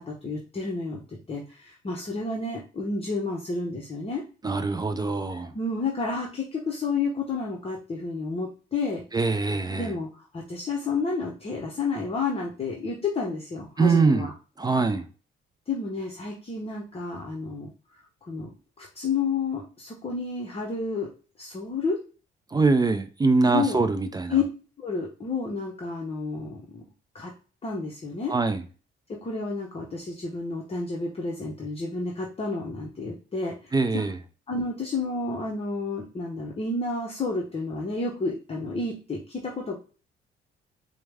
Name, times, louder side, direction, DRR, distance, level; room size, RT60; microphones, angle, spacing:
voice 1, 0.0-4.2 5.5-9.0 9.7-14.3 15.7-21.1 21.4-22.0 23.5-23.8 24.3-24.4 24.8-26.8 27.1-27.3 27.6-28.3 29.1-34.0 34.5-39.8, left 4 dB, 30° left, 0.8 m, -30 dB
voice 2, 4.4-5.5 9.1-9.9 13.8-14.3 14.6-15.1 22.5-24.3 28.3-28.6 33.7-34.2, right 3 dB, 20° right, 0.4 m, -23 dB
4.5 x 2.1 x 3.4 m
cardioid pair, 90°, 20 cm